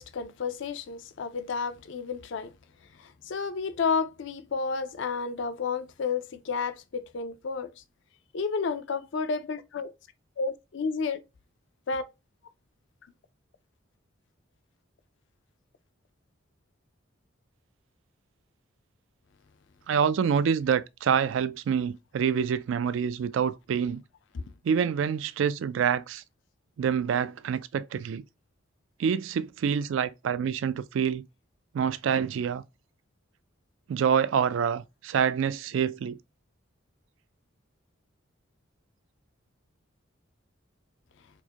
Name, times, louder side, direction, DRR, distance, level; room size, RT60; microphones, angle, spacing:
voice 1, 0.0-2.5 3.0-7.7 8.3-9.9 10.4-11.2 11.9-12.0 24.3-24.4, left 5 dB, 65° left, 0.4 m, -31 dB
voice 2, 19.9-24.0 24.6-26.2 26.8-28.2 29.0-31.3 31.7-32.6 33.9-36.2, right 7 dB, 70° right, 0.3 m, -26 dB
4.5 x 2.1 x 2.8 m
head